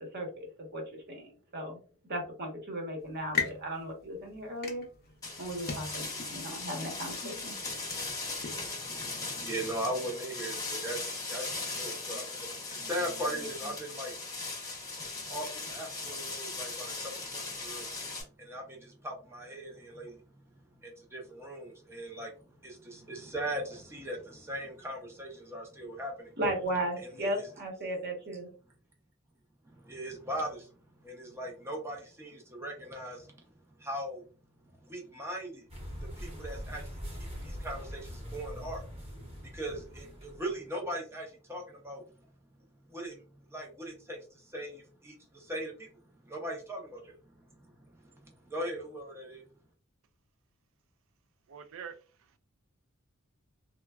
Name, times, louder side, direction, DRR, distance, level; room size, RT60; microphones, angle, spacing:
voice 1, 0.0-1.8 2.1-4.8 5.4-7.5 26.4-28.5, right 1 dB, 50° right, 1.0 m, -36 dB
sound 1, 3.0-8.7, left 5 dB, 45° left, 0.6 m, -40 dB
sound 2, 5.2-18.2, left 3 dB, 15° left, 0.9 m, -38 dB
voice 2, 8.8-14.2 15.0-17.9 18.4-20.2 20.5-26.4 27.2-27.5 29.6-30.7 31.0-33.4 33.8-34.2 34.9-35.6 36.0-42.0 42.9-43.2 43.5-45.9 46.2-47.2 48.0-49.4, right 1 dB, 10° right, 0.6 m, -39 dB
sound 3, 35.7-40.6, equal, 30° right, 1.0 m, -42 dB
voice 3, 51.5-52.4, right 7 dB, 65° right, 0.4 m, -46 dB
3.1 x 2.2 x 2.3 m
head